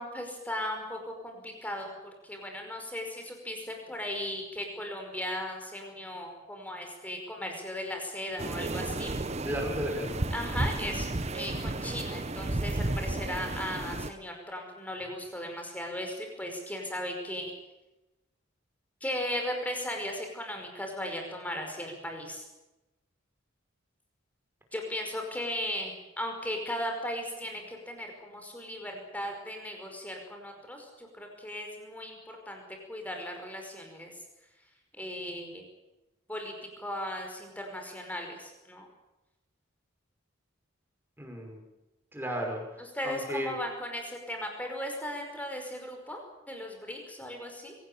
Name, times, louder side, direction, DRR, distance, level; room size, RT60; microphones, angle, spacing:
voice 1, 0.0-1.9 2.2-9.1 10.3-17.5 19.0-22.5 24.7-32.6 32.9-34.1 35.0-35.6 36.3-38.9 42.8-47.8, left 1 dB, 5° left, 3 dB, 5.2 m, -37 dB
sound 1, 8.4-14.1, right 2 dB, 30° right, 0.9 m, -33 dB
voice 2, 9.4-10.2 41.2-41.6 42.1-42.6 43.0-43.6, equal, 10° right, 2 dB, 5.6 m, -34 dB
24.0 x 17.5 x 8.8 m, 1.0 s
head